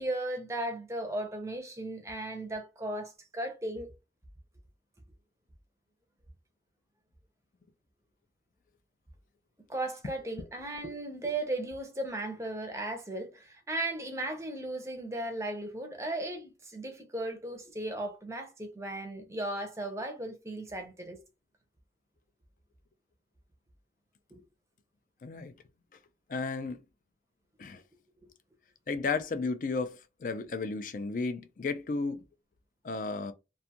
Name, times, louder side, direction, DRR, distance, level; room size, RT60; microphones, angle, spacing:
voice 1, 0.0-3.9 9.7-21.2 24.3-24.4, right 1 dB, 15° right, 0.6 m, -36 dB
voice 2, 25.2-25.5 26.3-26.8 27.6-27.8 28.9-32.2 32.8-33.3, left 4 dB, 50° left, 0.3 m, -33 dB
2.5 x 2.3 x 2.8 m
head